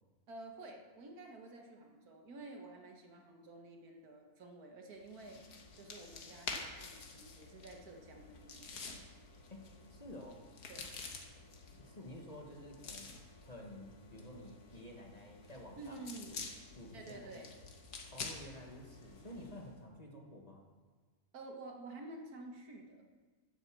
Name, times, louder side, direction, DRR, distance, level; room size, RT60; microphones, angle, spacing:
voice 1, 0.3-5.4 5.8-8.8 10.7-10.9 15.8-16.4 16.9-17.5 21.3-23.0, right 2 dB, 75° right, 2 dB, 1.9 m, -51 dB
sound 1, 5.0-19.7, left 4 dB, 80° left, 1.8 m, -49 dB
voice 2, 9.5-10.4 11.8-13.1 13.5-16.5 16.7-17.4 18.1-20.6, left 1 dB, 25° left, 0 dB, 1.5 m, -51 dB
11.0 x 7.9 x 7.3 m, 1.4 s
omnidirectional pair, 1.6 m